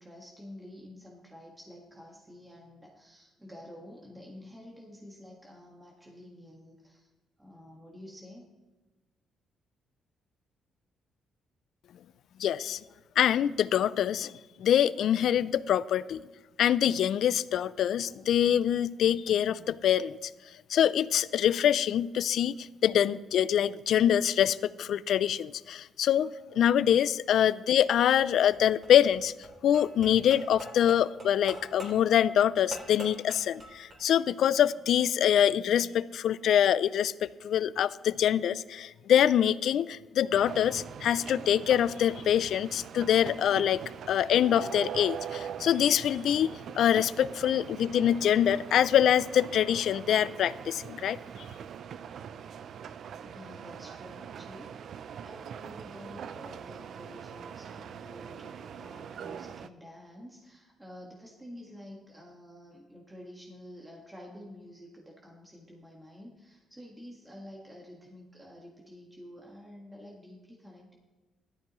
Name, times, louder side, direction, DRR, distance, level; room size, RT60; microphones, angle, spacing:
voice 1, 0.0-7.1 7.4-8.5 53.2-71.0, left 1 dB, 10° right, -2 dB, 1.6 m, -49 dB
voice 2, 12.4-12.8 13.2-14.3 14.6-16.2 16.6-20.3 20.7-29.3 29.6-43.8 44.1-51.2, left 10 dB, 70° left, 18 dB, 0.3 m, -25 dB
sound 1, 28.2-34.0, right 1 dB, 40° right, 3.2 m, -45 dB
sound 2, 40.3-59.7, right 8 dB, 65° right, 0.4 m, -42 dB
14.0 x 12.5 x 3.1 m, 1.2 s
cardioid pair, 90°, 0 cm